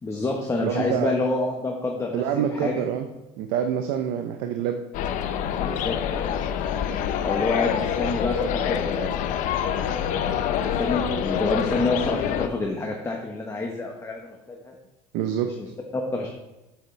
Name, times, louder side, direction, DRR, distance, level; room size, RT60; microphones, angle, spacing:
voice 1, 0.0-2.8 5.6-6.0 6.8-6.9 7.2-9.1 9.8-9.9 10.6-14.7 15.4-15.7 15.9-16.3, left 3 dB, 20° left, 0 dB, 1.0 m, -28 dB
voice 2, 0.6-1.2 2.1-3.1 3.4-4.8 15.1-15.7, right 9 dB, 70° right, 6 dB, 0.7 m, -26 dB
sound 1, 4.9-12.5, left 8 dB, 60° left, 0.7 m, -26 dB
7.9 x 7.7 x 3.3 m, 1.0 s
supercardioid pair, 105°, 15 cm